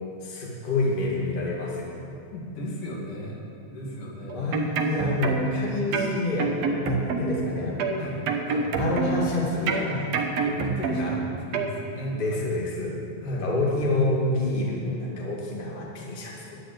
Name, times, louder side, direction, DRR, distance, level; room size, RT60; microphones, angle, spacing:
voice 1, 0.2-2.0 4.3-7.9 8.5-10.1 11.0-11.2 12.1-13.0 13.4-16.6, left 2 dB, 20° left, -3 dB, 1.9 m, -28 dB
voice 2, 2.3-3.4 3.7-4.5 8.0-8.2 8.5-8.6 9.8-10.0 10.4-12.4 13.2-13.5, equal, 85° left, -3 dB, 4.0 m, -35 dB
sound 1, 4.3-5.6 5.9-7.5 7.8-9.3 9.7-11.2 11.5-11.7, right 5 dB, 65° right, 2.1 m, -27 dB
12.0 x 8.9 x 9.5 m, 2.5 s
omnidirectional pair, 3.6 m